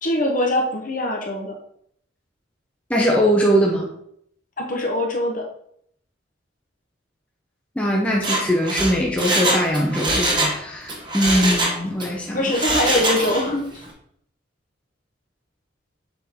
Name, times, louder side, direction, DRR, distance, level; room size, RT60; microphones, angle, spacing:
voice 1, 0.0-1.5 4.6-5.4 12.3-13.7, left 1 dB, 40° left, 1 dB, 1.0 m, -22 dB
voice 2, 2.9-3.9 7.8-12.5, equal, 5° left, -3 dB, 0.7 m, -21 dB
Mechanisms, 8.1-10.6 10.9-12.1 12.5-13.5 13.8-13.9, right 1 dB, 25° right, 1.1 m, -23 dB
6.9 x 3.9 x 3.6 m, 0.70 s
head